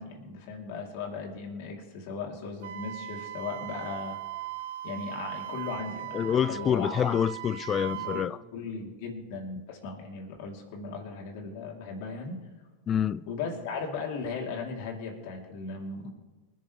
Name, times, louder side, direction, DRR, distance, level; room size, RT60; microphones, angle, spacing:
voice 1, 0.0-4.2 4.8-6.9 7.9-8.2 8.5-12.4 13.3-16.1, left 4 dB, 60° left, 3.9 m, -37 dB
Wind instrument woodwind instrument, 2.6-8.3, right 13 dB, 70° right, 0.6 m, -39 dB
voice 2, 6.1-8.4 12.9-13.2, left 8 dB, 30° left, 0.4 m, -27 dB
26.0 x 10.5 x 3.6 m
hypercardioid pair, 90°, 0 cm